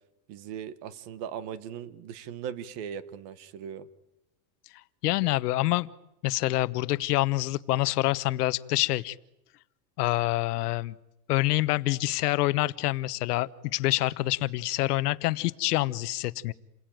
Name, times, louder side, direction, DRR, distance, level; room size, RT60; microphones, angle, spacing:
voice 1, 0.3-3.9, right 8 dB, 35° right, 15 dB, 1.3 m, -39 dB
voice 2, 5.0-5.9 6.2-9.2 10.0-10.9 11.3-16.5, left 17 dB, 70° left, 16 dB, 1.0 m, -26 dB
29.0 x 21.0 x 9.1 m, 0.90 s
supercardioid pair, 175°, 49 cm